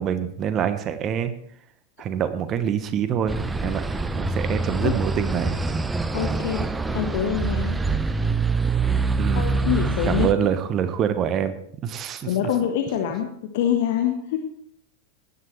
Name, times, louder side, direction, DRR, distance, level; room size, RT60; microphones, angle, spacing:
voice 1, 0.0-1.3 2.0-3.4 3.6-3.8 4.1-5.6 9.2-9.4 10.1-12.3, right 8 dB, 30° right, 11 dB, 1.1 m, -25 dB
sound 1, 3.3-10.3, right 3 dB, 10° right, 0.6 m, -25 dB
voice 2, 6.1-6.6 6.9-7.7 9.3-10.5 12.2-14.4, left 9 dB, 50° left, 4 dB, 1.2 m, -25 dB
16.5 x 11.0 x 3.2 m, 0.68 s
figure-of-eight pair, 90°, 0 cm